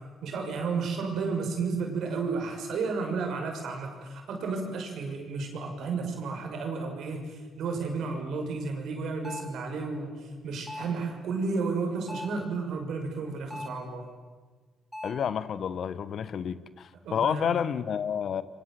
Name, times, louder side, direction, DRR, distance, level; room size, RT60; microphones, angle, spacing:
voice 1, 0.2-14.1 17.0-17.5, right 4 dB, 75° right, 3 dB, 6.3 m, -32 dB
sound 1, 9.2-9.6 10.7-11.1 12.1-12.5 13.5-13.9 14.9-15.3, left 1 dB, 5° left, 4.0 m, -40 dB
voice 2, 15.0-18.4, left 8 dB, 60° left, 15 dB, 1.3 m, -30 dB
30.0 x 24.0 x 7.8 m, 1.4 s
cardioid pair, 90°, 0 cm